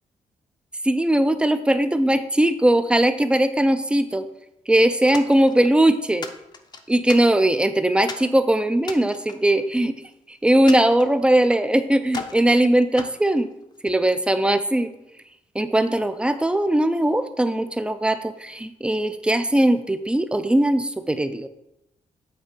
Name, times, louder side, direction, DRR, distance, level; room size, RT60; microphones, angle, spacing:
voice 1, 0.8-4.3 4.7-6.3 6.9-9.9 10.3-13.5 13.8-14.9 15.5-21.5, right 1 dB, 10° right, 10 dB, 0.4 m, -20 dB
sound 1, 5.1-5.8 6.2-7.6 8.1-8.3 8.8-10.1 10.7-11.7 12.1-12.5 13.0-14.0, left 5 dB, 35° left, 0.6 m, -38 dB
8.8 x 4.5 x 5.2 m, 0.86 s
wide cardioid pair, 160°, 12 cm